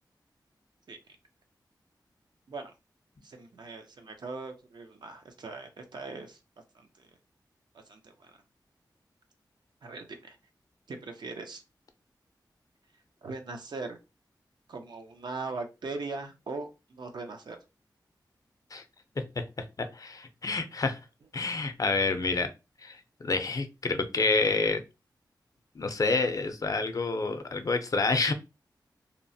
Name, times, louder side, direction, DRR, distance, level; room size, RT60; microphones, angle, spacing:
voice 1, 3.2-6.4 6.7-7.1 7.7-8.3 9.8-10.4 10.9-11.6 13.2-14.0 14.7-17.6, right 3 dB, 70° right, 0.6 m, -40 dB
voice 2, 19.2-21.0 21.3-22.5 22.8-24.8 25.8-28.3, left 3 dB, 50° left, 0.4 m, -28 dB
2.8 x 2.0 x 2.6 m
wide cardioid pair, 65°, 8 cm